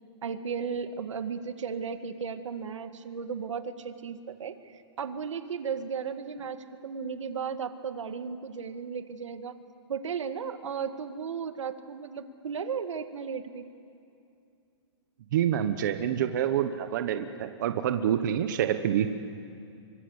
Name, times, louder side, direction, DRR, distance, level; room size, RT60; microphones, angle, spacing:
voice 1, 0.2-9.6 9.9-13.7, right 6 dB, 85° right, 9 dB, 1.9 m, -35 dB
voice 2, 15.3-19.1, right 10 dB, 40° right, 8 dB, 1.0 m, -27 dB
26.0 x 24.0 x 8.1 m, 2.5 s
hypercardioid pair, 170°, 15 cm